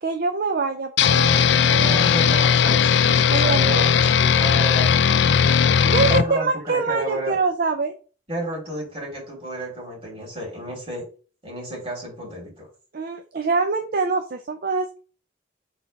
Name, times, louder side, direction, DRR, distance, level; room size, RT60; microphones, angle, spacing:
voice 1, 0.0-2.4 3.3-3.9 5.8-7.9 12.9-15.0, right 4 dB, 55° right, 7 dB, 0.6 m, -25 dB
sound 1, 1.0-6.3, left 7 dB, 70° left, 0.4 m, -18 dB
voice 2, 1.8-5.0 6.1-7.4 8.3-11.0 11.4-12.7, right 1 dB, 30° right, -2 dB, 3.1 m, -32 dB
4.3 x 4.3 x 5.2 m, 0.37 s
head